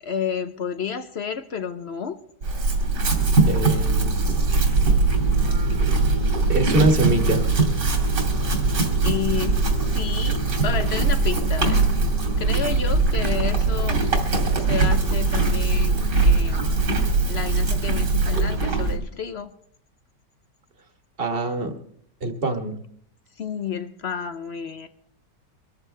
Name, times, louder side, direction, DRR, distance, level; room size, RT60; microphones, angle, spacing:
voice 1, 0.0-2.2 9.0-11.9 12.4-14.0 14.5-16.8 17.3-19.5 23.4-24.9, left 7 dB, 55° left, 0.7 m, -31 dB
Chewing mastication / Livestock farm animals working animals, 2.4-19.0, right 3 dB, 75° right, 3.2 m, -21 dB
voice 2, 3.5-4.1 6.5-7.5 21.2-21.7 22.2-22.8, right 2 dB, 35° right, 1.6 m, -23 dB
24.0 x 13.5 x 3.3 m
omnidirectional pair, 1.9 m